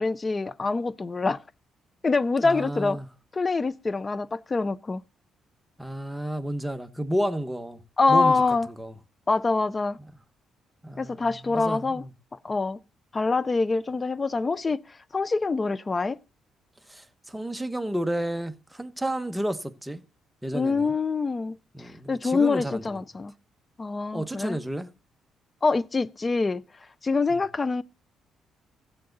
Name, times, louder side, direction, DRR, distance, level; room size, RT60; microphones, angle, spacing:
voice 1, 0.0-1.4 2.0-3.0 3.3-5.0 8.0-8.7 9.3-10.0 11.0-12.0 12.4-12.8 13.1-14.8 15.1-16.2 20.5-21.6 22.1-23.3 23.8-24.6 25.6-26.6 27.0-27.8, left 3 dB, 30° left, 0.6 m, -25 dB
voice 2, 2.4-3.1 5.8-7.8 8.1-8.4 8.8-8.9 10.8-12.1 16.9-20.0 20.4-20.9 21.7-23.0 24.1-24.9 27.3-27.4, right 1 dB, 5° right, 1.2 m, -31 dB
15.5 x 7.7 x 3.9 m
cardioid pair, 90°, 0 cm